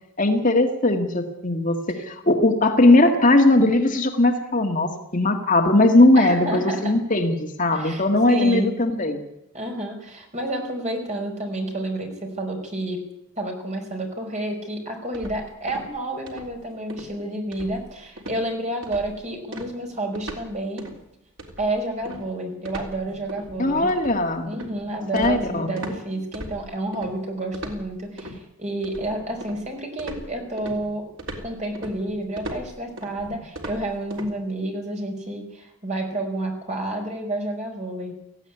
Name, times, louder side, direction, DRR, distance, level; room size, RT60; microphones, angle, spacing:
voice 1, 0.2-9.2 23.6-24.5 25.1-25.7, left 2 dB, 35° left, 4 dB, 1.8 m, -19 dB
voice 2, 6.2-7.0 7.7-8.7 9.5-13.0 13.4-20.9 21.6-24.0 24.4-31.1 31.4-38.2, right 1 dB, 30° right, 2 dB, 5.1 m, -30 dB
sound 1, 15.1-16.0 16.3-16.6 16.9-17.1 17.5-17.9 18.2-18.4 18.8-19.2 19.5-20.5 20.8-21.0 21.4-26.0 26.3-27.1 27.5-28.4 28.8-29.7 30.0-34.3, right 1 dB, 60° right, 3.6 m, -38 dB
18.0 x 15.5 x 9.8 m, 0.83 s
head